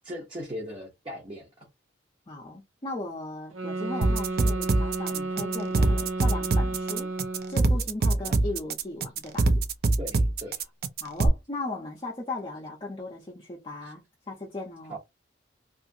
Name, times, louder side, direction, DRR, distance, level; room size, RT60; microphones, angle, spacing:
voice 1, 0.0-1.7 8.2-8.4 10.0-10.6 14.9-15.0, equal, 25° right, 0.8 m, -39 dB
voice 2, 2.3-7.1 7.5-9.5 11.0-15.0, left 2 dB, 25° left, 0.6 m, -37 dB
sound 1, 3.5-7.7, right 2 dB, 85° right, 0.9 m, -32 dB
sound 2, 4.0-11.3, right 2 dB, 50° right, 0.4 m, -24 dB
2.7 x 2.4 x 2.7 m
head